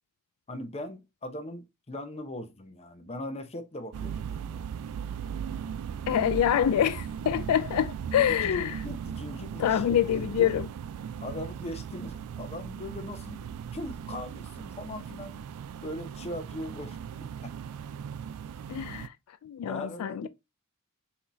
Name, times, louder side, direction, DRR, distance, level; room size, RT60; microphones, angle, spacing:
voice 1, 0.5-4.5 8.2-10.5 11.2-15.4 15.8-17.0 17.4-17.5 19.6-20.3, left 1 dB, 30° left, 0.7 m, -40 dB
sound 1, 3.9-19.1, right 7 dB, 85° right, 0.3 m, -38 dB
voice 2, 6.1-8.8 9.6-10.7 18.7-19.1 19.4-20.3, left 10 dB, 75° left, 0.3 m, -26 dB
5.7 x 2.8 x 3.0 m
head